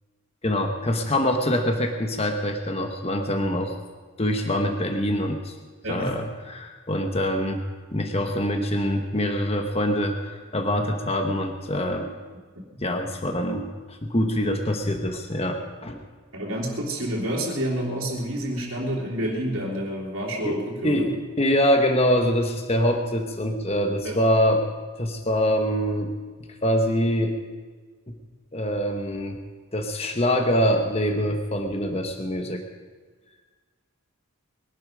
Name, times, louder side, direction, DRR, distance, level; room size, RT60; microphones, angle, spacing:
voice 1, 0.4-3.7 4.2-5.5 5.9-12.1 12.8-16.0 20.4-24.6 25.0-26.1 26.6-27.4 28.1-28.2 28.5-29.4 29.7-32.6, equal, 30° left, 4 dB, 1.2 m, -24 dB
voice 2, 5.8-6.2 16.3-21.1 24.0-24.2, equal, 70° right, -7 dB, 3.1 m, -29 dB
22.0 x 11.5 x 5.2 m, 1.4 s
head